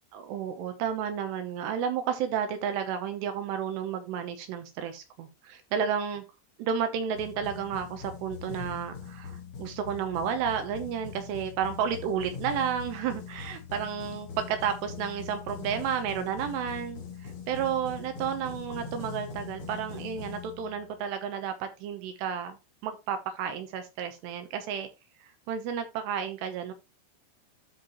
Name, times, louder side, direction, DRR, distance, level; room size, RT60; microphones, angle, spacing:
voice 1, 0.1-6.2 6.6-22.6 22.8-24.9 25.2-26.7, right 8 dB, 75° right, 2.9 m, -32 dB
sound 1, 7.1-21.0, left 6 dB, 75° left, 1.2 m, -42 dB
12.5 x 4.3 x 3.0 m
omnidirectional pair, 5.3 m